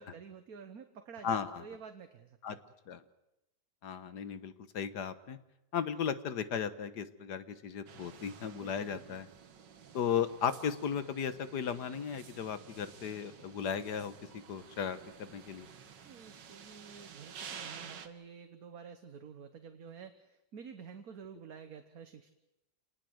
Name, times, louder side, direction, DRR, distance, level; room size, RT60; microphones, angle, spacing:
voice 1, 0.0-2.6 8.5-9.2 16.0-22.3, right 6 dB, 60° right, 8 dB, 1.6 m, -50 dB
voice 2, 1.2-1.6 2.4-2.6 2.9-3.0 3.8-5.4 5.7-9.3 9.9-14.1 14.5-15.7, left 7 dB, 70° left, 12 dB, 1.8 m, -36 dB
sound 1, 7.9-18.1, right 7 dB, 85° right, 2.1 m, -51 dB
28.0 x 19.5 x 7.9 m, 0.91 s
omnidirectional pair, 1.9 m